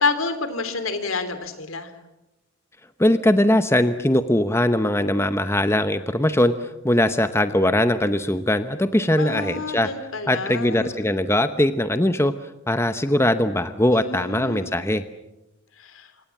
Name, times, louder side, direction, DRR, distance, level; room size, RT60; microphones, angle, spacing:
voice 1, 0.0-1.9 9.2-10.9 13.9-14.7 15.8-16.1, left 4 dB, 75° left, 11 dB, 3.3 m, -28 dB
voice 2, 3.0-9.9 10.3-12.3 12.7-15.0, left 1 dB, 10° left, 10 dB, 0.9 m, -21 dB
27.5 x 25.0 x 7.3 m, 0.94 s
head